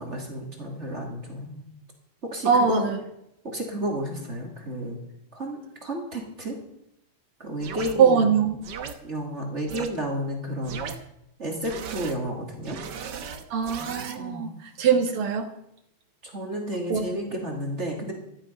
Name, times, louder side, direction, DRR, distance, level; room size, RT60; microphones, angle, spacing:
voice 1, 0.0-1.6 2.2-2.8 3.4-5.0 5.3-6.5 7.4-8.4 9.0-11.0 11.4-12.8 14.2-14.4 16.2-18.1, equal, 30° right, 0 dB, 2.7 m, -32 dB
voice 2, 2.5-3.0 8.0-8.6 13.5-15.5 16.9-17.1, right 6 dB, 75° right, 4 dB, 2.5 m, -22 dB
sound 1, 7.6-7.9 8.6-8.9 9.7-9.9 10.6-11.0 11.6-12.1 12.6-14.2, right 6 dB, 55° right, 1.6 m, -36 dB
14.5 x 11.5 x 5.8 m, 0.81 s
omnidirectional pair, 2.4 m